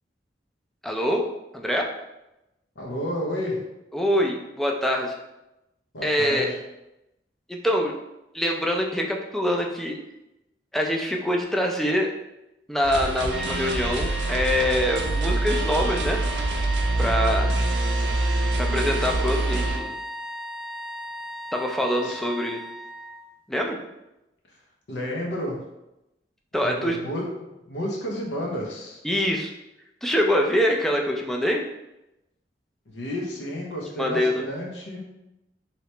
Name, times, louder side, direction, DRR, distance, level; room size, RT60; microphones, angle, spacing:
voice 1, 0.8-1.3 1.5-1.9 3.9-5.2 6.0-6.5 7.5-7.9 8.3-10.0 10.7-12.1 12.7-16.2 17.0-17.5 18.6-19.9 21.5-22.6 23.5-23.8 26.5-27.0 29.0-29.5 30.0-31.6 34.0-34.5, equal, ahead, 0 dB, 0.3 m, -24 dB
voice 2, 2.8-3.6 5.9-6.6 22.0-22.2 24.9-25.6 26.6-27.3 27.7-29.0 32.9-35.0, left 1 dB, 90° left, -1 dB, 0.8 m, -31 dB
sound 1, 12.8-19.8, right 2 dB, 75° right, 0.5 m, -25 dB
sound 2, 13.3-23.3, equal, 55° left, 0.5 m, -37 dB
2.9 x 2.8 x 3.2 m, 0.92 s
head